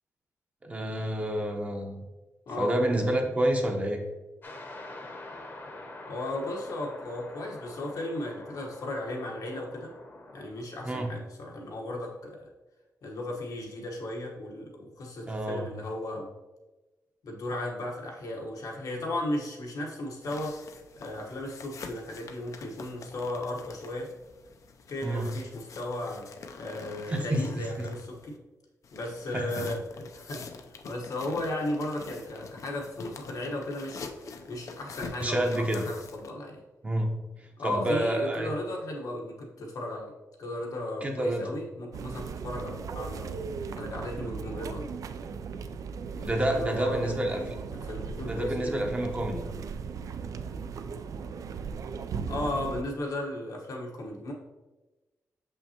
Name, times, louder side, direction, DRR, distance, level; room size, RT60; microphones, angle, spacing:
voice 1, 0.6-2.0 2.6-4.0 10.8-11.1 15.3-15.7 25.0-25.3 27.1-27.9 29.3-29.7 35.2-35.8 36.8-38.5 41.0-41.5 46.2-47.6 48.3-49.5, right 1 dB, 25° right, 2 dB, 0.7 m, -29 dB
sound 1, 4.4-10.4, left 2 dB, 35° left, 0.9 m, -45 dB
voice 2, 6.0-9.9 10.3-12.5 13.0-16.3 17.2-20.6 21.0-24.1 24.9-26.3 26.6-28.4 28.9-30.4 30.8-34.0 34.5-36.6 37.6-40.1 40.4-43.3 43.8-44.9 46.1-47.5 47.8-48.7 52.3-54.3, left 1 dB, 80° left, -1 dB, 1.2 m, -35 dB
sound 2, 20.2-28.4 28.8-36.3, left 5 dB, 60° left, 0.5 m, -46 dB
sound 3, 41.9-52.8, right 5 dB, 70° right, 0.3 m, -37 dB
6.6 x 5.5 x 2.9 m, 1.1 s
wide cardioid pair, 165°, 6 cm